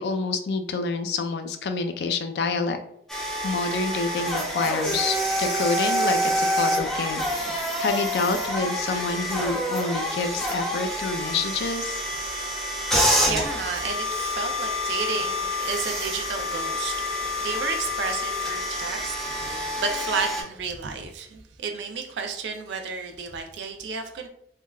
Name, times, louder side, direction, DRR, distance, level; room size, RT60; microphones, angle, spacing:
voice 1, 0.0-2.8 3.4-12.0, left 4 dB, 65° left, 7 dB, 0.3 m, -28 dB
sound 1, 3.1-20.4, left 1 dB, ahead, 0.5 m, -27 dB
voice 2, 12.7-24.3, right 5 dB, 80° right, 4 dB, 0.4 m, -32 dB
3.4 x 2.1 x 2.2 m, 0.69 s
head